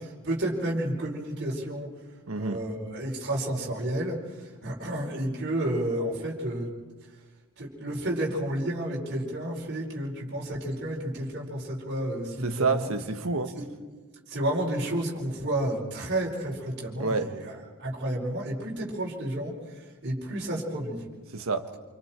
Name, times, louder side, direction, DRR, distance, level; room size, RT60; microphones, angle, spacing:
voice 1, 0.0-1.9 2.3-6.7 7.6-12.9 13.5-13.7 14.3-21.0, right 1 dB, 50° right, -3 dB, 5.0 m, -31 dB
voice 2, 2.3-2.6 12.4-13.5 17.0-17.3 21.3-21.7, right 3 dB, 65° right, 7 dB, 1.4 m, -28 dB
28.0 x 26.0 x 4.5 m, 1.3 s
head